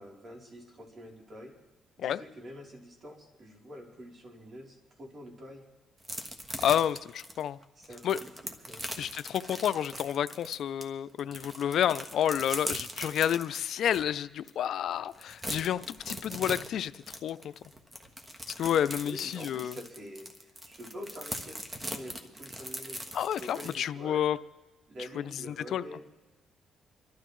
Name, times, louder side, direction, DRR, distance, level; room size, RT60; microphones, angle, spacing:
voice 1, 0.0-1.5 2.0-5.6 7.8-8.9 19.1-20.3 20.6-23.0 23.4-24.3 24.9-26.1, equal, 45° right, 3.4 m, -46 dB
sound 1, 6.0-10.8 11.2-14.0 14.5-14.6 14.9-23.7, right 1 dB, 20° right, 1.4 m, -40 dB
voice 2, 6.6-7.6 8.0-8.2 9.0-17.5 18.6-19.8 23.1-24.4 25.7-25.8, left 10 dB, 70° left, 0.4 m, -30 dB
27.5 x 12.0 x 3.1 m
cardioid pair, 90°, 0 cm